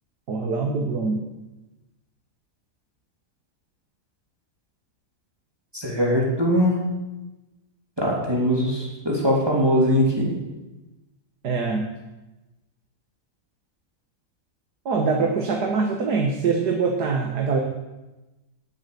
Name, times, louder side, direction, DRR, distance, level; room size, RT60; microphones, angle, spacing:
voice 1, 0.3-1.3 11.4-11.9 14.9-17.6, right 4 dB, 85° right, 2 dB, 2.0 m, -23 dB
voice 2, 5.7-6.8 8.0-10.4, equal, 15° right, -3 dB, 3.3 m, -21 dB
19.0 x 8.1 x 7.0 m, 1.1 s
omnidirectional pair, 1.7 m